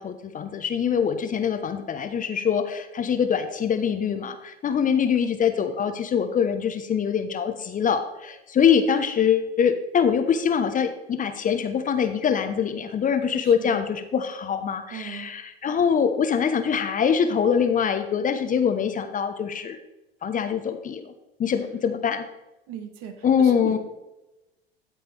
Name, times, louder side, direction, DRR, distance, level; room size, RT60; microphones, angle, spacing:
voice 1, 0.0-19.8 20.2-21.1 21.4-22.3 23.2-23.8, left 7 dB, 25° left, 8 dB, 0.9 m, -24 dB
voice 2, 13.3-13.8 14.9-15.3 22.7-23.8, right 8 dB, 50° right, 6 dB, 1.6 m, -38 dB
14.0 x 7.9 x 3.4 m, 0.98 s
figure-of-eight pair, 80°, 31 cm